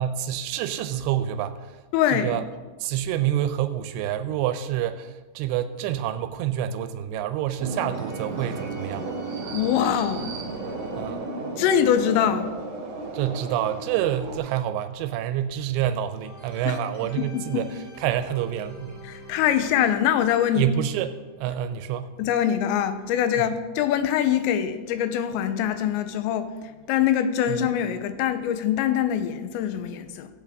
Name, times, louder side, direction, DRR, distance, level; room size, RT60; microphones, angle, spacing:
voice 1, 0.0-1.8 2.1-2.4 2.8-9.1 11.0-11.3 13.1-17.7 18.0-19.1 20.6-21.1 21.4-22.1 23.4-23.5 27.5-27.7, right 11 dB, 85° right, 2.8 m, -27 dB
voice 2, 1.9-2.3 9.5-10.3 11.6-12.5 16.7-16.8 17.0-17.7 19.0-20.7 22.2-30.3, left 9 dB, 90° left, 3.0 m, -24 dB
sound 1, 7.6-14.4, right 3 dB, 65° right, 1.6 m, -34 dB
sound 2, 7.7-13.2 16.2-22.3, equal, 50° left, 2.2 m, -47 dB
16.5 x 8.4 x 3.6 m
omnidirectional pair, 5.0 m